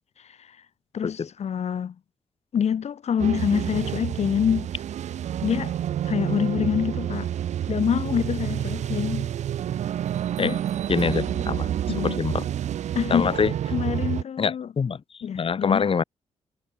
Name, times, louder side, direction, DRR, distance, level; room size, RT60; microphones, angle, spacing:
voice 1, 0.9-1.9 2.5-4.7 5.4-5.8 6.0-7.3 7.7-9.3 10.4-10.6 11.9-12.2 12.9-13.3 13.7-14.7 15.2-15.9, left 8 dB, 70° left, 5.7 m, -26 dB
sound 1, 3.2-14.2, right 10 dB, 80° right, 1.5 m, -29 dB
voice 2, 10.9-12.5 13.1-13.5 14.4-15.0 15.3-16.0, left 6 dB, 50° left, 3.5 m, -25 dB
cardioid pair, 70°, 12 cm